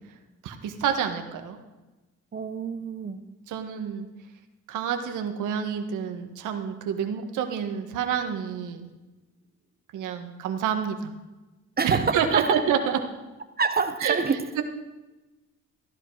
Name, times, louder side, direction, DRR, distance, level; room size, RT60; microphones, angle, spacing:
voice 1, 0.4-1.6 3.5-4.0 4.7-8.9 9.9-11.1 11.8-13.0 14.0-14.2 14.6-14.7, right 8 dB, 85° right, 5 dB, 1.6 m, -28 dB
voice 2, 2.3-3.2 11.8-12.6 13.6-14.4, right 5 dB, 30° right, 9 dB, 0.9 m, -26 dB
15.0 x 11.0 x 4.8 m, 1.1 s
cardioid pair, 90°, 30 cm